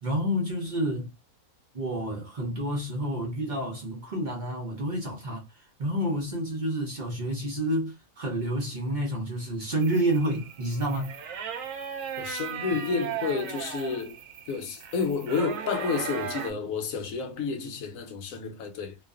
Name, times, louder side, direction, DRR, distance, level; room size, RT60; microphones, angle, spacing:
voice 1, 0.0-1.1 1.7-11.1 12.7-12.8, right 1 dB, 45° right, 0.6 m, -29 dB
sound 1, 9.8-16.5, right 7 dB, 75° right, 1.0 m, -37 dB
voice 2, 12.2-14.2 14.5-19.0, left 5 dB, 75° left, 1.0 m, -30 dB
2.4 x 2.3 x 2.4 m
omnidirectional pair, 1.5 m